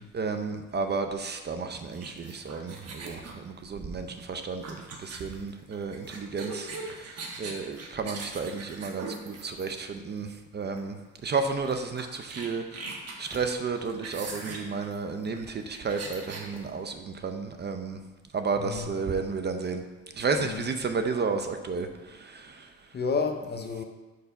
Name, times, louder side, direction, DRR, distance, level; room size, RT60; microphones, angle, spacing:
voice 1, 0.0-18.0 18.3-19.8 20.2-22.9, right 4 dB, 35° right, 7 dB, 0.5 m, -32 dB
sound 1, 1.9-10.0 10.8-11.0 11.2-11.3 11.7-16.5, right 3 dB, 55° right, 1.1 m, -41 dB
sound 2, 13.3-14.1 16.5-17.4 17.7-17.8, left 1 dB, 5° left, 1.1 m, -52 dB
voice 2, 18.6-18.9 20.4-20.7 22.9-23.8, left 5 dB, 35° left, 5 dB, 0.7 m, -31 dB
4.7 x 4.6 x 5.7 m, 1.2 s
cardioid pair, 90°, 30 cm